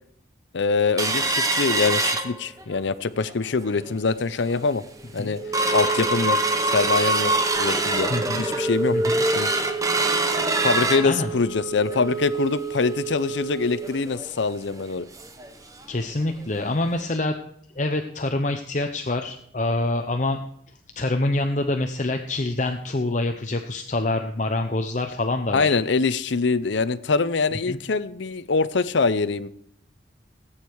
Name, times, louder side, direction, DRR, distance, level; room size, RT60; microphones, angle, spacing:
voice 1, 0.5-4.8 5.1-5.4 5.7-6.4 6.6-7.3 7.6-8.1 8.4-9.0 9.3-9.5 10.6-15.1 25.5-29.5, left 4 dB, 70° left, 14 dB, 0.6 m, -24 dB
sound 1, 1.0-2.8 3.3-3.4 3.7-4.0 4.5-4.6 5.0-15.5 15.8-15.9 16.3-16.5 17.0-17.1, right 2 dB, 15° right, 0.9 m, -25 dB
voice 2, 8.1-8.4 8.9-9.2 11.0-11.3 15.9-17.4 17.8-20.4 21.0-25.8 27.7-27.8, left 2 dB, 40° left, 5 dB, 0.8 m, -26 dB
18.0 x 8.8 x 4.7 m, 0.69 s
head